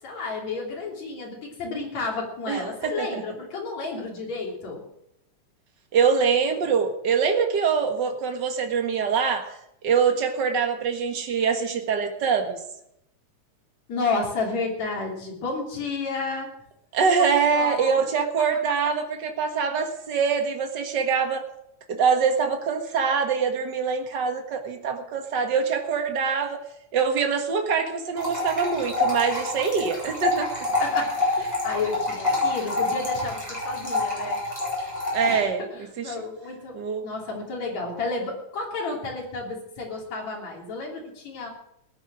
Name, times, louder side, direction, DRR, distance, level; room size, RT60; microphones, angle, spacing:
voice 1, 0.0-4.8 13.9-16.5 17.2-18.0 30.8-34.4 35.2-35.4 36.0-41.5, left 3 dB, 65° left, -1 dB, 4.7 m, -31 dB
voice 2, 2.5-3.2 5.9-9.6 9.8-12.6 16.9-21.4 21.9-26.6 26.9-30.7 35.1-35.6 36.0-36.2 36.7-37.1, right 6 dB, 40° right, 4 dB, 1.9 m, -24 dB
sound 1, 28.2-35.4, left 2 dB, 5° left, 7.1 m, -27 dB
18.0 x 9.9 x 6.3 m, 0.79 s
omnidirectional pair, 3.4 m